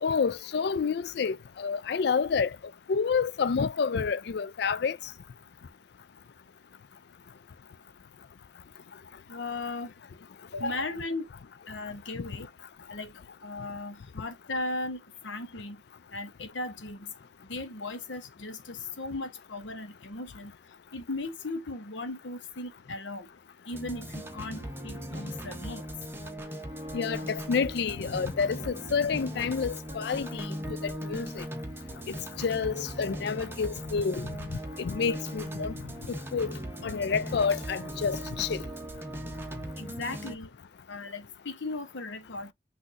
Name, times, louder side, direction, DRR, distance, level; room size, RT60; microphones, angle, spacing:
voice 1, 0.0-2.5 2.9-5.0 26.9-31.4 32.4-34.3 34.8-35.7 36.1-36.5 36.8-38.6, left 5 dB, 60° left, 0.4 m, -29 dB
voice 2, 9.3-9.9 10.5-11.3 11.7-12.5 12.9-13.1 13.4-15.8 16.1-17.1 17.4-20.5 20.9-23.3 23.7-25.9 39.8-40.5 40.9-42.5, left 2 dB, 80° left, 1.1 m, -37 dB
sound 1, 23.7-40.4, equal, 15° right, 0.9 m, -39 dB
6.1 x 2.7 x 2.7 m
head